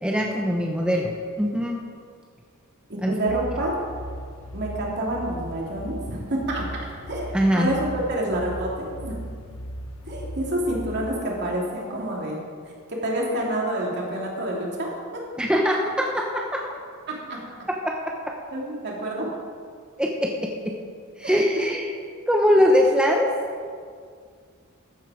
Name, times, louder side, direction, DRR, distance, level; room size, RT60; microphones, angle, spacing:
voice 1, 0.0-1.8 3.0-3.1 7.3-7.7 15.4-16.6 17.8-17.9 20.0-20.8 21.2-21.9 22.3-23.3, equal, 5° right, -1 dB, 0.8 m, -22 dB
voice 2, 2.9-3.8 4.5-6.7 7.1-9.2 10.0-12.4 12.9-15.2 17.1-17.7 18.5-19.3 21.2-21.4, right 1 dB, 50° right, -3 dB, 2.7 m, -28 dB
sound 1, 3.3-11.1, equal, 70° left, 1.1 m, -37 dB
14.0 x 8.6 x 4.9 m, 2.1 s
head